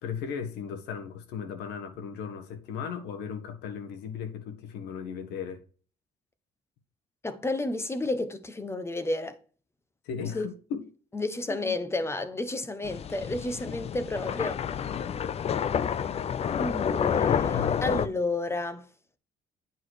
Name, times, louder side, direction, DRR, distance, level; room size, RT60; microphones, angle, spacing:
voice 1, 0.0-5.6 10.0-10.8 11.5-11.7 17.5-18.1, left 7 dB, 85° left, 1.6 m, -36 dB
voice 2, 7.2-9.4 10.3-10.5 11.1-14.6 16.5-18.9, left 2 dB, 15° left, 1.1 m, -31 dB
sound 1, 12.8-18.1, left 8 dB, 40° left, 0.5 m, -29 dB
9.1 x 4.9 x 4.6 m
cardioid pair, 110°, 17 cm